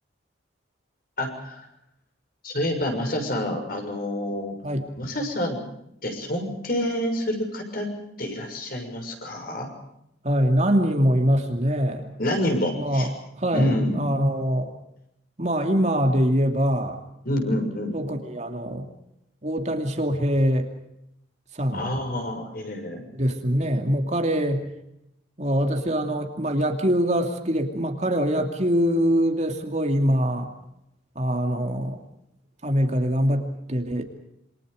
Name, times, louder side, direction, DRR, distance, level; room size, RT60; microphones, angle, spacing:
voice 1, 1.2-1.7 2.4-4.5 5.0-5.6 6.0-7.9 8.2-9.7 12.2-13.1 13.5-14.1 17.2-18.0 21.7-23.1, left 1 dB, 45° left, 4 dB, 6.6 m, -27 dB
voice 2, 10.2-12.2 12.7-14.7 15.4-17.0 17.9-18.9 19.4-20.7 21.5-21.9 23.2-24.7 25.4-30.5 31.1-32.0 32.6-34.0, equal, 35° right, 4 dB, 2.6 m, -23 dB
27.5 x 25.0 x 5.1 m, 0.79 s
head